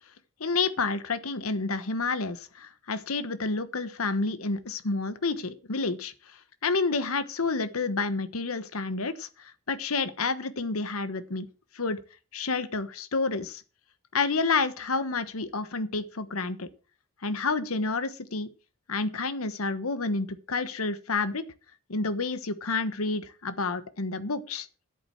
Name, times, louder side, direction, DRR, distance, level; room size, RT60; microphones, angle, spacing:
voice 1, 0.4-6.1 6.6-11.5 11.7-12.0 12.3-13.6 14.1-16.7 17.2-18.5 18.9-21.4 21.9-24.7, left 3 dB, 85° left, 13 dB, 1.2 m, -29 dB
10.5 x 8.8 x 6.2 m, 0.35 s
head